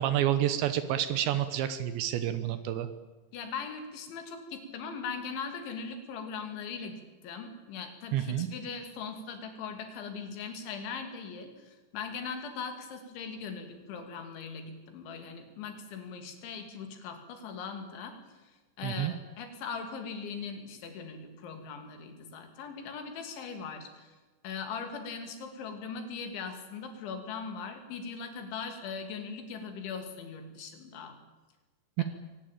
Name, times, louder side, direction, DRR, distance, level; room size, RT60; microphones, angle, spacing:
voice 1, 0.0-2.9 8.1-8.5 18.8-19.1 32.0-32.1, right 11 dB, 80° right, 11 dB, 3.2 m, -29 dB
voice 2, 3.3-18.2 18.8-24.2 24.4-31.2 32.0-32.1, left 5 dB, 80° left, 6 dB, 5.0 m, -40 dB
23.5 x 19.0 x 9.0 m, 1.2 s
omnidirectional pair, 5.3 m